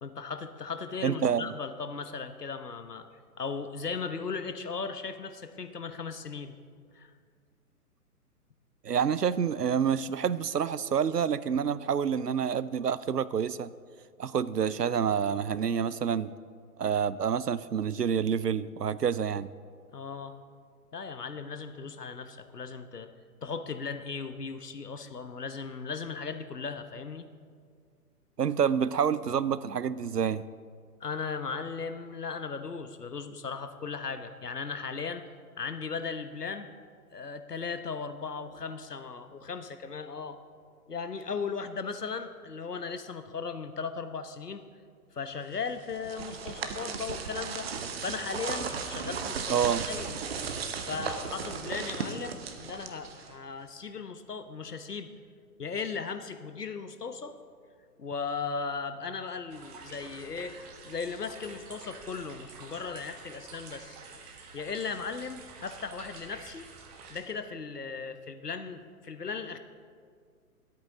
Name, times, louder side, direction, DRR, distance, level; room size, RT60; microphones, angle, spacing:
voice 1, 0.0-3.1 3.4-6.6 6.9-7.1 19.9-20.4 20.9-23.1 23.4-27.3 31.0-35.2 35.6-36.7 37.1-40.4 40.9-44.6 45.1-47.7 48.0-50.2 50.8-55.1 55.6-57.4 58.0-60.6 60.8-64.0 64.5-66.7 67.1-69.6, left 5 dB, 75° left, 9 dB, 1.1 m, -37 dB
voice 2, 1.0-1.5 8.8-13.7 14.2-16.3 16.8-19.5 28.4-30.5 49.5-49.9, right 7 dB, 80° right, 17 dB, 0.6 m, -28 dB
sound 1, 45.6-53.5, right 5 dB, 40° right, 1.0 m, -36 dB
sound 2, 59.5-67.2, right 4 dB, 25° right, 1.3 m, -48 dB
23.0 x 8.7 x 3.8 m, 2.1 s
figure-of-eight pair, 125°, 47 cm